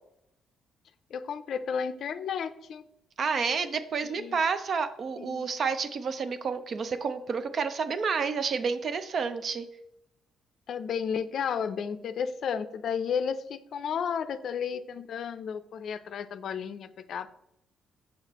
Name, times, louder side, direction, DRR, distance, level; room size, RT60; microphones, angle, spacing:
voice 1, 1.1-2.9 4.0-4.4 5.2-5.5 10.7-17.3, left 7 dB, 65° left, 11 dB, 0.4 m, -33 dB
voice 2, 3.2-9.7, right 5 dB, 50° right, 10 dB, 0.5 m, -30 dB
6.2 x 5.8 x 3.0 m, 0.78 s
cardioid pair, 90°, 0 cm